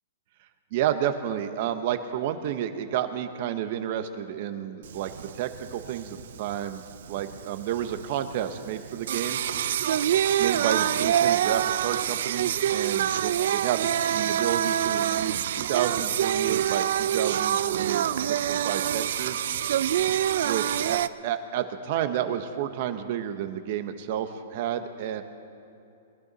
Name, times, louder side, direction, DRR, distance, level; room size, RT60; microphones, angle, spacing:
voice 1, 0.7-6.8 7.1-9.4 10.4-19.5 20.4-25.2, right 10 dB, 40° right, 9 dB, 0.9 m, -31 dB
Singing, 4.8-21.1, right 10 dB, 60° right, 0.4 m, -26 dB
22.0 x 12.0 x 4.1 m, 2.7 s
hypercardioid pair, 165°, 0 cm